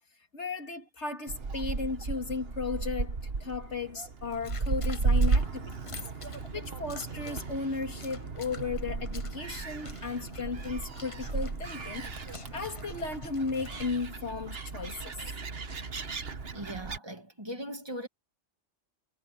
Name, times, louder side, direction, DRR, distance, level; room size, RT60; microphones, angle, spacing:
voice 1, 0.3-6.0 6.5-12.1 12.5-15.2, left 4 dB, 65° left, 2.9 m, -35 dB
Gull seagull, 1.3-17.0, right 4 dB, 55° right, 1.6 m, -34 dB
sound 1, 4.3-14.1, left 4 dB, 30° left, 0.9 m, -49 dB
voice 2, 16.5-18.1, equal, 20° right, 2.2 m, -39 dB
omnidirectional pair, 1.2 m